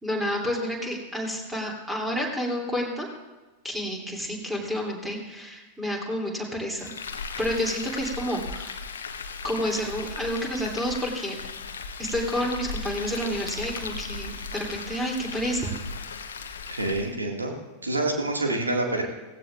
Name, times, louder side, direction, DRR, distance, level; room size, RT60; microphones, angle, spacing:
voice 1, 0.0-3.1 3.6-6.9 7.4-8.8 9.4-11.4 12.0-15.8, equal, 5° right, -1 dB, 2.9 m, -29 dB
Frying (food), 6.8-17.1, left 5 dB, 65° left, 0.9 m, -36 dB
voice 2, 16.7-17.5 17.8-19.0, right 2 dB, 80° right, 1 dB, 2.0 m, -27 dB
17.5 x 16.0 x 2.5 m, 1.2 s
figure-of-eight pair, 90°, 0 cm